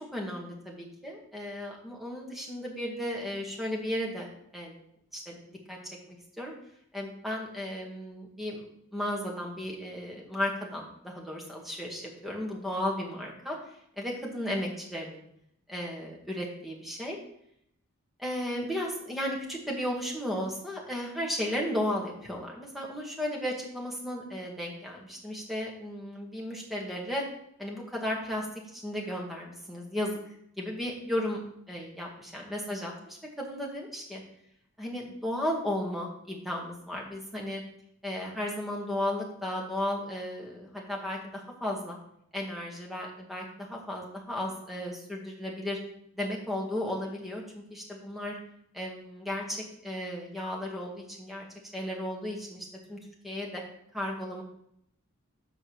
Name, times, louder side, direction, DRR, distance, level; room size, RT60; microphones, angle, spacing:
voice 1, 0.1-4.3 4.5-4.8 5.1-5.8 6.1-6.5 6.9-8.6 8.9-13.6 14.0-15.2 15.7-17.2 18.2-27.2 27.6-28.5 28.7-31.4 31.7-34.2 34.8-37.6 38.0-42.0 42.3-45.8 46.1-48.4 48.7-49.6 49.8-51.5 51.7-53.0 53.2-53.6 53.9-54.4, left 1 dB, ahead, -2 dB, 1.7 m, -34 dB
6.8 x 5.2 x 6.3 m, 0.73 s
head